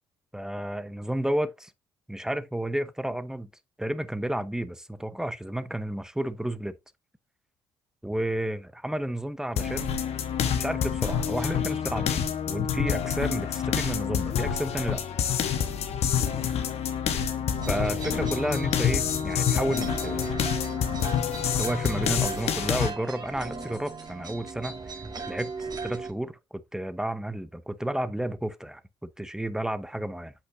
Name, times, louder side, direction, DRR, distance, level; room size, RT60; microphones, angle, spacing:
voice 1, 0.3-1.7 2.1-3.5 3.8-6.7 8.0-9.9 10.6-12.2 12.5-15.0 17.7-20.4 21.6-24.8 25.2-30.3, right 1 dB, 5° right, 0.8 m, -31 dB
sound 1, 9.6-22.9, left 8 dB, 55° left, 1.1 m, -27 dB
sound 2, 17.6-26.1, right 4 dB, 30° right, 2.0 m, -37 dB
7.9 x 5.8 x 2.6 m
hypercardioid pair, 50°, 13 cm